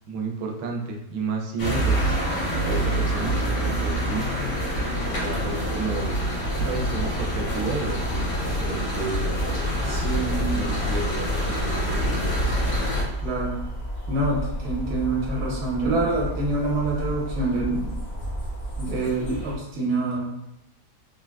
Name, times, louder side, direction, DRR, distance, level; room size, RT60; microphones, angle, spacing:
voice 1, 0.1-2.2 2.6-4.5 5.1-6.2 6.6-9.9 10.5-12.3, right 3 dB, 80° right, 1 dB, 1.1 m, -32 dB
sound 1, 1.6-13.0, equal, 85° left, 1.6 m, -26 dB
sound 2, 9.0-19.6, right 1 dB, 55° left, 0.7 m, -32 dB
voice 2, 9.8-10.8 13.2-13.6 14.1-17.9 18.8-20.3, right 2 dB, 55° right, -4 dB, 1.1 m, -26 dB
3.6 x 2.2 x 2.2 m, 0.85 s
omnidirectional pair, 1.8 m